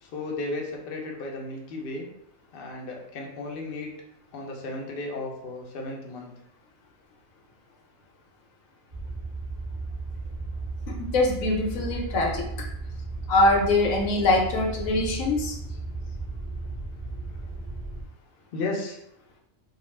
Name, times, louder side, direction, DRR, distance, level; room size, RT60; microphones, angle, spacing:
voice 1, 0.0-2.1 2.5-3.9 4.3-6.3 14.7-14.8 15.7-15.8 17.4-17.5 18.5-19.0, left 2 dB, 60° left, 0 dB, 0.6 m, -34 dB
sound 1, 8.9-18.0, right 3 dB, 15° right, 0.4 m, -35 dB
voice 2, 11.0-12.7 13.3-15.5, left 2 dB, 80° left, 1 dB, 1.0 m, -23 dB
2.3 x 2.3 x 3.1 m, 0.77 s
omnidirectional pair, 1.4 m